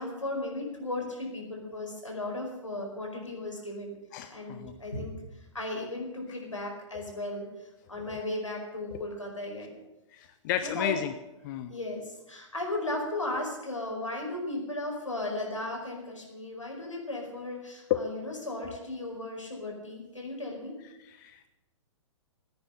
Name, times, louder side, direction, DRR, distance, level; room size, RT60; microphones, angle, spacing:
voice 1, 0.0-3.9 4.3-5.1 5.5-9.7 10.6-11.0 11.7-20.7, left 2 dB, 85° left, 0 dB, 4.9 m, -36 dB
voice 2, 4.1-4.7 8.1-8.2 8.9-9.1 10.1-11.1 11.4-11.7 17.9-18.0 21.0-21.5, left 11 dB, 40° left, 10 dB, 0.8 m, -32 dB
15.0 x 9.8 x 8.1 m, 0.96 s
figure-of-eight pair, 115°, 16 cm